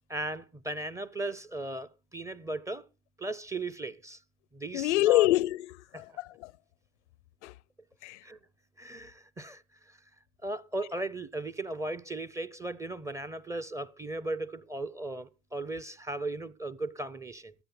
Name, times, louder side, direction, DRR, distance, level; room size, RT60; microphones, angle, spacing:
voice 1, 0.1-2.8 3.2-4.2 4.5-5.3 8.2-8.4 8.8-10.0 10.4-17.5, right 2 dB, 10° right, 0.5 m, -37 dB
voice 2, 4.7-6.5 7.4-7.5 8.0-8.2, left 17 dB, 70° left, 0.5 m, -26 dB
14.5 x 10.0 x 3.7 m
hypercardioid pair, 90°, 36 cm